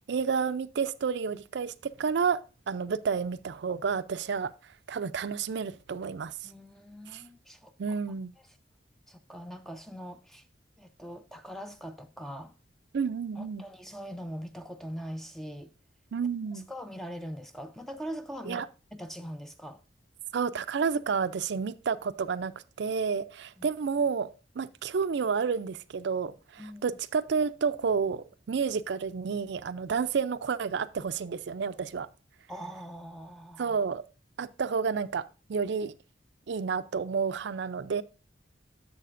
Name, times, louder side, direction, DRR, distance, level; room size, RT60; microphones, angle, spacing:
voice 1, 0.1-2.4 2.7-4.5 4.9-6.3 7.1-7.2 7.8-8.3 12.9-13.6 16.1-16.7 18.5-18.7 20.3-22.5 22.8-24.3 24.6-32.1 33.6-34.0 34.4-35.2 35.5-35.9 36.5-38.0, right 5 dB, 65° right, 0.4 m, -30 dB
voice 2, 6.4-8.0 9.1-10.5 10.8-12.5 13.4-15.7 16.5-19.8 23.6-23.7 26.6-27.0 32.5-33.8, equal, ahead, 0.4 m, -42 dB
11.0 x 7.0 x 2.5 m
head